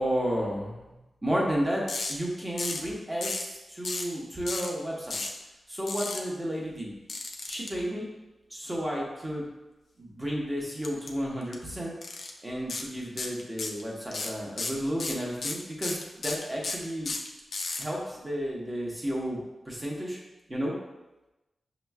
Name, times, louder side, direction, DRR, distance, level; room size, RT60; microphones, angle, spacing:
voice 1, 0.0-1.8 2.1-5.2 5.7-7.0 7.5-8.1 8.5-9.5 10.0-11.9 12.4-17.1 17.8-19.4 19.7-20.2 20.5-20.7, equal, 15° right, -3 dB, 0.8 m, -32 dB
sound 1, 1.9-2.1 2.6-2.9 3.2-3.5 3.8-4.1 4.5-4.7 5.1-5.4 5.9-6.2 7.1-7.7 10.8-11.1 11.4-11.5 12.0-12.3 12.7-12.9 13.2-13.8 14.1-17.8, left 3 dB, 60° left, 0.4 m, -33 dB
6.1 x 3.0 x 2.3 m, 1.0 s
wide cardioid pair, 160°, 0 cm